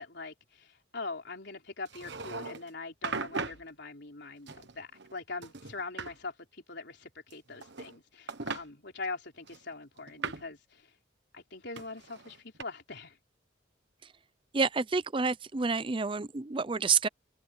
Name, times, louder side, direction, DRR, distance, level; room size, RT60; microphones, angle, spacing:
voice 1, 0.0-10.9 11.3-13.2, left 3 dB, 60° left, 4.3 m, -42 dB
sound 1, 1.9-2.7 3.0-3.6 4.5-5.1 5.4-6.1 7.3-8.0 8.3-8.6 9.5-10.5 11.8-12.6, right 4 dB, 60° right, 1.3 m, -38 dB
voice 2, 14.5-17.1, right 5 dB, 25° right, 0.5 m, -28 dB
head